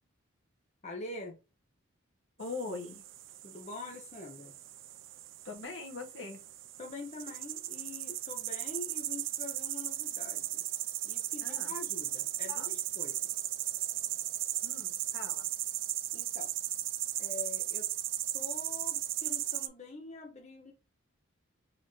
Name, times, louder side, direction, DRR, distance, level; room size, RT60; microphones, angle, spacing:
voice 1, 0.8-1.3 3.4-4.5 6.8-10.7 11.0-13.3 16.1-16.5 17.2-17.9 18.3-20.7, left 3 dB, 35° left, 0.7 m, -45 dB
voice 2, 2.4-3.0 5.4-6.4 11.4-11.7 12.5-12.7 14.6-15.5, left 4 dB, 65° left, 1.1 m, -42 dB
sound 1, 2.4-19.7, right 14 dB, 65° right, 0.4 m, -36 dB
4.1 x 2.6 x 3.0 m
head